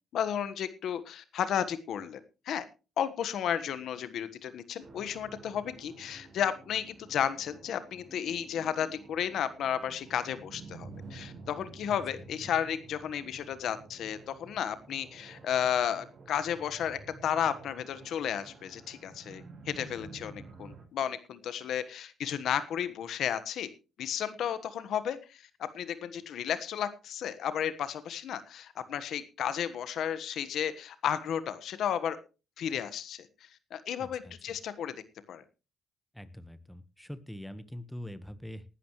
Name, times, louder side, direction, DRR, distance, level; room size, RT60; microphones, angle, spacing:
voice 1, 0.1-2.6 3.0-23.7 24.0-32.2 32.6-35.0 35.3-35.4, left 9 dB, 70° left, 13 dB, 1.4 m, -33 dB
sound 1, 4.8-20.8, right 3 dB, 55° right, 5.4 m, -50 dB
voice 2, 34.0-34.3 36.1-38.6, left 1 dB, 5° left, 12 dB, 1.3 m, -43 dB
19.0 x 11.5 x 3.2 m, 0.32 s
cardioid pair, 90°, 0 cm